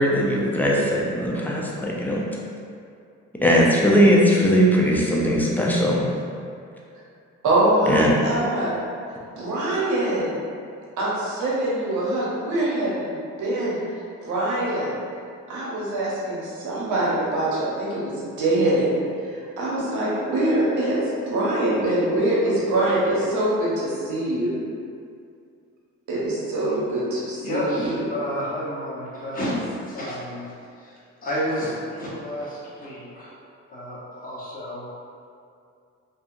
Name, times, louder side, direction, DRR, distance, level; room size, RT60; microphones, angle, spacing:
voice 1, 0.0-2.3 3.4-6.1 7.9-8.2, equal, 5° left, -4 dB, 0.4 m, -19 dB
voice 2, 7.4-8.7 9.4-10.3 11.0-13.8 14.2-15.0 15.5-18.9 19.3-24.5 26.1-27.9, right 1 dB, 75° right, -6 dB, 0.9 m, -24 dB
voice 3, 27.4-30.4 30.8-33.3 33.7-34.8, equal, 30° left, -8 dB, 0.9 m, -30 dB
2.7 x 2.4 x 2.5 m, 2.4 s
cardioid pair, 90°, 30 cm